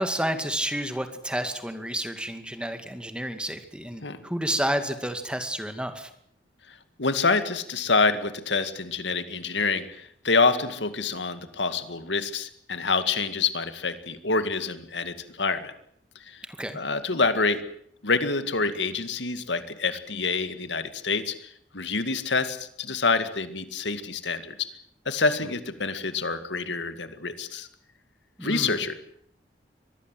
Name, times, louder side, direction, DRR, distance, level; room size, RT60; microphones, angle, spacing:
voice 1, 0.0-6.1 16.4-16.8 28.4-28.8, right 1 dB, 5° right, 8 dB, 2.2 m, -30 dB
voice 2, 7.0-15.7 16.3-16.4 16.7-17.6 18.0-24.7 25.1-27.7 28.4-28.9, left 4 dB, 85° left, 10 dB, 2.2 m, -27 dB
24.5 x 19.5 x 7.8 m, 0.68 s
head